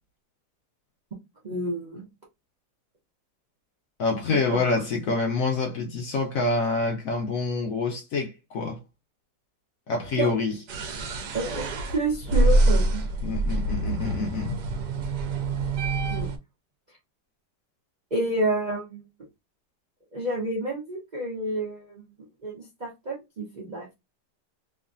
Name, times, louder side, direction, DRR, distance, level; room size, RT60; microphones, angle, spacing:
voice 1, 1.4-2.1 4.5-4.6 10.2-10.3 11.3-13.0 16.1-16.3 18.1-19.0 20.1-22.0 22.4-23.9, right 1 dB, 45° right, 0.5 m, -29 dB
voice 2, 4.0-8.8 9.9-10.5 13.2-14.6, left 3 dB, 65° left, 0.8 m, -26 dB
sound 1, 10.7-16.4, right 2 dB, 75° right, 1.2 m, -25 dB
3.0 x 2.4 x 2.5 m
omnidirectional pair, 1.9 m